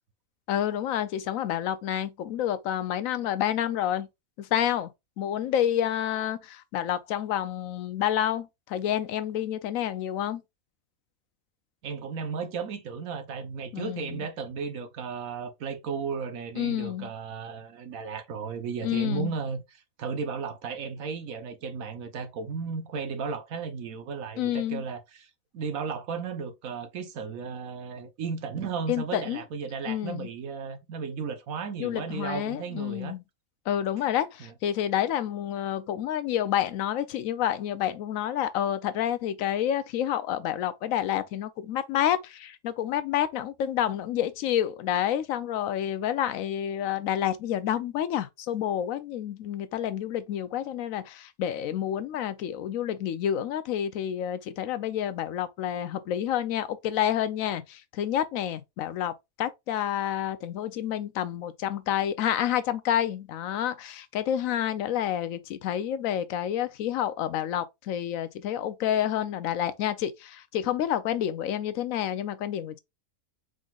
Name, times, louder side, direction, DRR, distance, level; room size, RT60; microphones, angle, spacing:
voice 1, 0.5-4.1 4.4-4.9 5.2-10.4 13.7-14.3 16.6-17.1 18.8-19.3 24.4-24.8 28.9-29.4 29.9-30.3 31.8-33.2 33.7-72.8, left 10 dB, 75° left, 1.0 m, -29 dB
voice 2, 11.8-25.3 25.5-33.1 34.4-34.5, right 5 dB, 80° right, 1.3 m, -34 dB
4.9 x 3.8 x 2.4 m
omnidirectional pair, 1.4 m